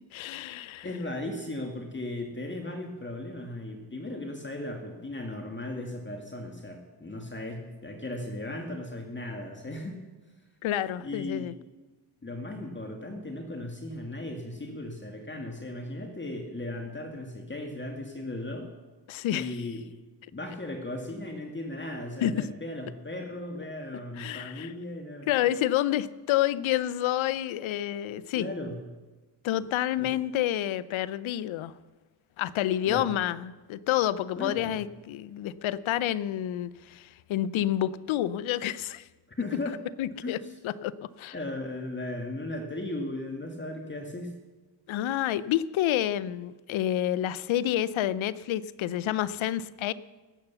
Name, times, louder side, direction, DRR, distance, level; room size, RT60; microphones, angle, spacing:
voice 1, 0.1-0.9 10.6-11.5 19.1-19.5 22.2-22.3 24.2-24.7 25.3-28.5 29.4-31.7 32.4-39.1 40.0-40.4 40.6-41.3 44.9-49.9, left 12 dB, 80° left, 17 dB, 0.7 m, -29 dB
voice 2, 0.8-10.0 11.0-11.5 12.2-18.7 19.3-19.8 20.3-25.3 28.3-28.8 30.0-30.1 32.8-33.1 34.4-34.8 39.4-39.8 40.2-40.5 41.3-44.3, left 1 dB, 25° left, 3 dB, 1.9 m, -36 dB
18.5 x 8.0 x 7.0 m, 1.2 s
cardioid pair, 70°, 47 cm